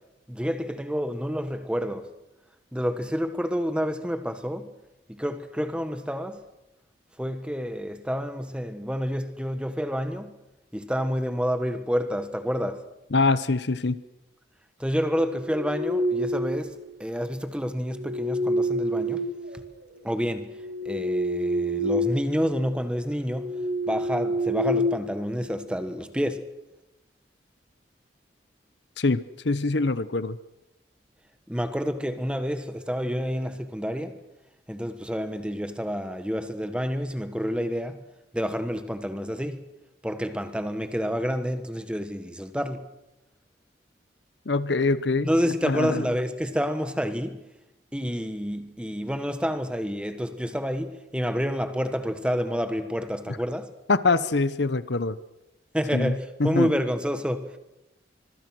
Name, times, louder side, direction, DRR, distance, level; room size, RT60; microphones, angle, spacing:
voice 1, 0.3-2.1 2.7-4.7 5.1-6.4 7.2-10.4 10.7-12.9 14.8-19.3 19.5-19.6 20.0-26.5 31.5-34.2 34.7-38.0 38.3-39.7 40.0-42.9 45.2-47.5 47.9-53.7 55.7-57.6, equal, 5° right, 1.5 m, -29 dB
voice 2, 13.1-14.0 29.0-29.2 29.4-30.4 44.5-45.3 45.6-46.0 53.9-55.2 55.9-56.1 56.4-56.7, left 3 dB, 70° left, 0.9 m, -24 dB
sound 1, 15.3-16.8 17.8-19.9 20.4-22.3 22.6-22.8 23.3-25.7, equal, 65° right, 3.5 m, -28 dB
25.5 x 23.5 x 6.3 m
head